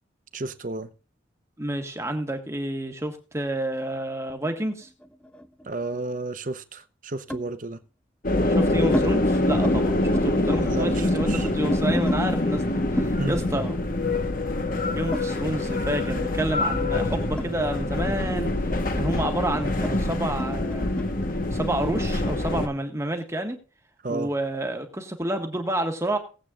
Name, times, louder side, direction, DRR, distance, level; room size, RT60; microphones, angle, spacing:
voice 1, 0.3-0.9 5.6-7.8 10.7-11.5 13.2-13.4 24.0-24.3, right 2 dB, 45° right, 0.8 m, -32 dB
voice 2, 1.6-4.9 8.4-13.8 14.7-18.5 19.0-20.9 21.5-23.6 24.1-26.2, right 1 dB, 15° right, 1.5 m, -29 dB
sound 1, 4.6-6.0 7.3-7.5 8.3-9.1 9.4-9.8 10.0-12.2 13.0-15.8 16.1-21.1, equal, 5° left, 0.4 m, -35 dB
sound 2, 8.2-22.7, left 2 dB, 45° left, 1.1 m, -25 dB
19.0 x 8.3 x 2.4 m
head